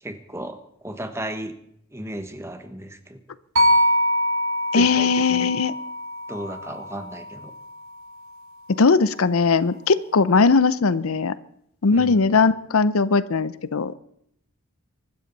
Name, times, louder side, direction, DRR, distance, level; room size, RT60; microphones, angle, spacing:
voice 1, 0.0-1.5 1.9-3.2 4.7-5.5 6.3-7.5 11.9-12.2, right 1 dB, 10° right, 8 dB, 1.3 m, -34 dB
sound 1, 3.6-7.8, equal, 75° right, 2.5 m, -24 dB
voice 2, 4.7-5.7 8.8-11.3 11.8-13.9, left 4 dB, 75° left, 16 dB, 0.6 m, -19 dB
24.0 x 13.0 x 4.1 m, 0.72 s
head